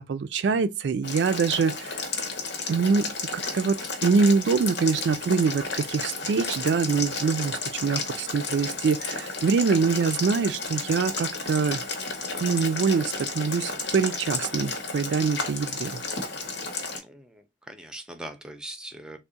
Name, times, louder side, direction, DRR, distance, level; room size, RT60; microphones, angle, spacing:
voice 1, 0.0-2.1 2.7-11.8 12.4-16.0, right 5 dB, 70° right, 0.3 m, -24 dB
Boiling, 1.0-17.0, left 4 dB, 85° left, 0.9 m, -32 dB
voice 2, 17.0-19.2, right 1 dB, 5° right, 0.5 m, -41 dB
3.5 x 2.1 x 3.9 m
head